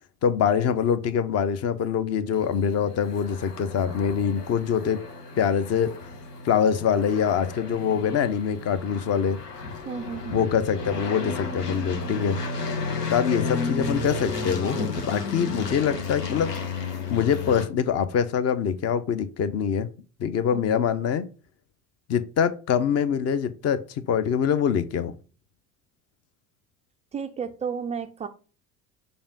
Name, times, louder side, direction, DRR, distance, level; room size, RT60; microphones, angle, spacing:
voice 1, 0.2-5.0 5.4-5.9 6.4-9.4 10.3-12.4 13.1-16.5 17.1-19.9 20.2-21.3 22.1-25.1, left 7 dB, 35° left, 0.7 m, -24 dB
sound 1, 2.3-17.6, left 4 dB, 85° left, 1.1 m, -33 dB
voice 2, 9.9-10.4 20.5-20.8 27.1-28.3, right 6 dB, 15° right, 0.3 m, -33 dB
6.9 x 2.6 x 5.3 m
figure-of-eight pair, 70°, 46 cm